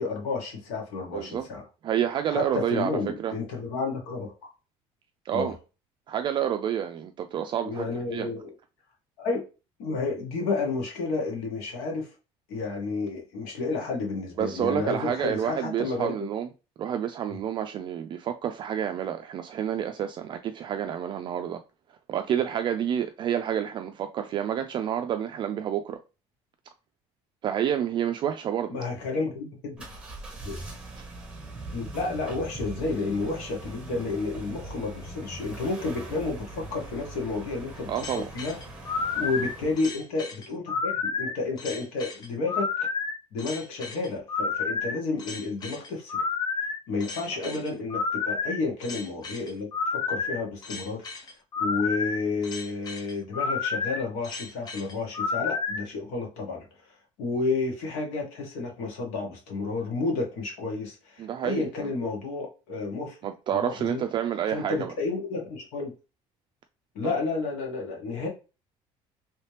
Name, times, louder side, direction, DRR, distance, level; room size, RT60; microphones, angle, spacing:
voice 1, 0.0-1.6 2.3-4.5 5.3-5.5 7.6-8.5 9.2-9.4 9.8-12.1 12.5-16.1 17.3-17.4 28.7-29.8 30.4-30.6 31.7-42.7 43.3-46.2 46.9-51.0 51.6-56.6 57.2-63.2 63.5-64.0 64.5-65.9 66.9-68.3, left 3 dB, 90° left, 1.5 m, -31 dB
voice 2, 1.1-1.5 1.8-3.3 5.3-5.6 6.1-7.9 8.1-8.3 14.4-16.5 16.8-21.6 22.1-26.0 27.4-28.7 37.9-38.2 47.4-47.6 61.2-61.9 63.2-64.9 67.0-67.1, right 9 dB, 40° right, 0.3 m, -29 dB
car starting, 29.8-39.9, right 2 dB, 10° right, 1.4 m, -41 dB
sound 1, 37.9-55.8, left 4 dB, 35° left, 0.6 m, -31 dB
3.2 x 2.9 x 3.2 m
cardioid pair, 130°, 12 cm